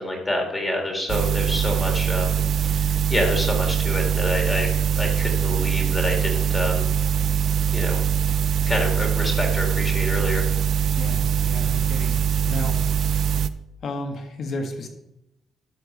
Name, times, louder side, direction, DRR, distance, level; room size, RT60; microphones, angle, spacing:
voice 1, 0.0-6.9 7.7-8.0 8.7-10.4, left 1 dB, 15° left, 1 dB, 2.1 m, -27 dB
sound 1, 1.1-13.5, right 8 dB, 55° right, 0.4 m, -22 dB
voice 2, 10.9-12.9 13.8-14.9, left 2 dB, 50° left, 4 dB, 1.6 m, -33 dB
12.5 x 4.6 x 6.5 m, 0.88 s
cardioid pair, 160°, 0 cm